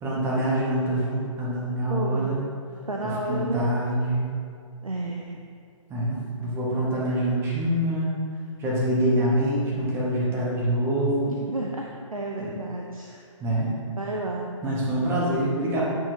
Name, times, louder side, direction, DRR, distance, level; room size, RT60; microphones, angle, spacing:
voice 1, 0.0-2.5 3.0-4.3 5.9-8.1 8.6-11.4 12.4-12.5 13.4-13.7 14.6-15.8, right 1 dB, 15° right, -5 dB, 1.4 m, -25 dB
voice 2, 1.9-2.4 2.9-3.7 4.8-5.4 11.3-13.1 14.0-14.5, right 2 dB, 85° right, 0 dB, 0.7 m, -31 dB
9.0 x 5.7 x 2.8 m, 2.2 s
figure-of-eight pair, 135°, 17 cm